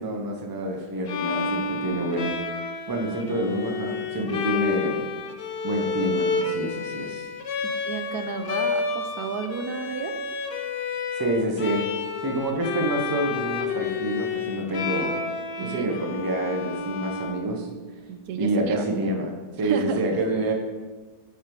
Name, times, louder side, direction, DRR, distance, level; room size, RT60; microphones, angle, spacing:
voice 1, 0.0-2.4 2.9-5.0 5.6-7.3 11.1-11.8 12.2-15.2 15.6-17.7 18.3-20.5, right 1 dB, 25° right, 2 dB, 0.5 m, -27 dB
Bowed string instrument, 1.1-18.0, left 4 dB, 65° left, 0.6 m, -30 dB
voice 2, 7.9-10.1 15.6-15.9 18.1-18.8 19.6-20.0, right 6 dB, 90° right, 7 dB, 1.2 m, -32 dB
9.1 x 3.4 x 4.6 m, 1.3 s
omnidirectional pair, 1.6 m